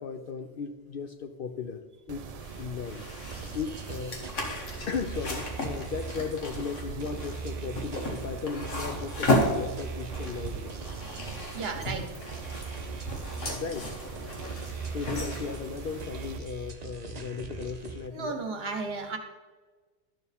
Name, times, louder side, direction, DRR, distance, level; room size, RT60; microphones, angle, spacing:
voice 1, 0.0-1.8 2.1-3.1 3.5-4.2 4.9-10.8 13.5-13.9 14.9-18.4, left 5 dB, 60° left, 6 dB, 0.6 m, -36 dB
Mechanisms, 2.1-16.4, right 6 dB, 85° right, 0.3 m, -43 dB
sound 1, 2.4-16.7, left 1 dB, 85° left, 1.8 m, -34 dB
sound 2, 3.3-18.1, right 5 dB, 40° right, 0.7 m, -41 dB
voice 2, 11.5-12.1 18.1-19.2, right 4 dB, 60° right, 6 dB, 1.2 m, -33 dB
12.0 x 6.9 x 3.5 m, 1.3 s
omnidirectional pair, 1.3 m